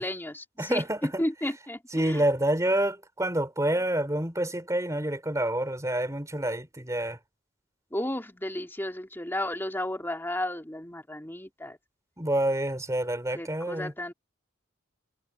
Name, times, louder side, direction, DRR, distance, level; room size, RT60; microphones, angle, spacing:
voice 1, 0.0-2.2 7.9-11.8 13.3-14.1, left 1 dB, 10° left, 2.9 m, -33 dB
voice 2, 0.6-1.2 1.9-7.2 12.2-13.9, right 1 dB, 15° right, 4.1 m, -28 dB
head